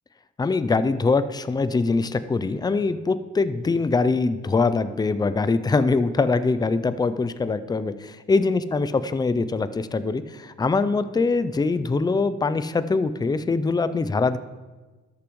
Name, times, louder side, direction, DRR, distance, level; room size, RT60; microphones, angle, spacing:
voice 1, 0.4-14.4, left 3 dB, 15° left, 13 dB, 0.4 m, -23 dB
13.0 x 6.9 x 3.1 m, 1.3 s
cardioid pair, 90°, 30 cm